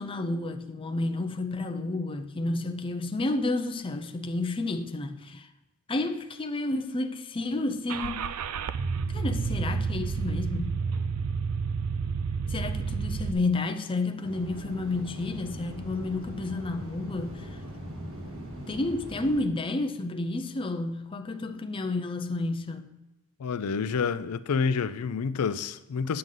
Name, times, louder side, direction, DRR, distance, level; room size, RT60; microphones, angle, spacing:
voice 1, 0.0-5.5 5.9-8.3 9.1-10.9 12.5-17.6 18.7-22.9, left 2 dB, 25° left, 0.5 m, -31 dB
Car / Engine starting, 7.9-13.3, right 5 dB, 85° right, 0.4 m, -30 dB
sound 1, 14.2-19.4, equal, 65° right, 1.7 m, -40 dB
voice 2, 23.4-26.2, left 5 dB, 80° left, 0.4 m, -28 dB
9.2 x 7.6 x 3.8 m
head